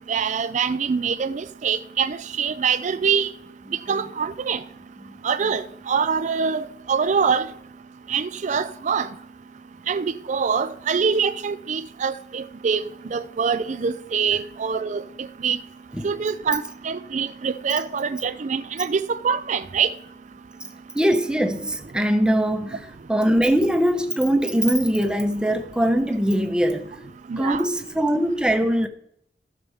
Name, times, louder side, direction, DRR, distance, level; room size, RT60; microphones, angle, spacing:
voice 1, 0.1-3.3 3.9-4.6 5.2-7.5 8.1-9.1 9.9-12.8 13.1-15.0 15.4-15.6 16.0-19.9 27.3-27.6, right 6 dB, 40° right, 0.4 m, -24 dB
voice 2, 20.9-27.0 27.4-28.9, equal, 5° right, 0.8 m, -22 dB
15.0 x 6.7 x 3.5 m
head